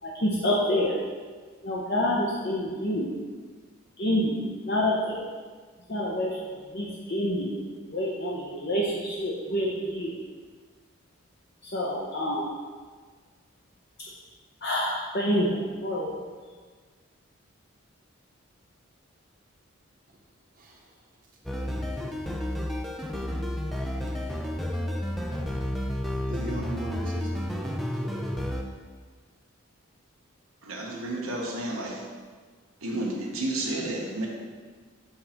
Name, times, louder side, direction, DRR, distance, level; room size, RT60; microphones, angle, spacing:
voice 1, 0.0-0.9 1.6-3.1 4.0-4.4 4.7-5.2 5.9-7.6 7.9-10.2 11.6-12.5 14.6-16.2, left 1 dB, 50° left, -5 dB, 0.8 m, -27 dB
voice 2, 20.5-21.0 21.7-22.4 23.0-23.4 24.0-24.1 25.1-25.3 25.8-28.3, right 1 dB, 40° right, -1 dB, 0.9 m, -41 dB
sound 1, 21.5-28.6, left 1 dB, ahead, 0.3 m, -31 dB
voice 3, 30.6-32.0 32.8-34.3, right 1 dB, 85° right, -2 dB, 1.2 m, -31 dB
5.5 x 3.9 x 5.8 m, 1.5 s
head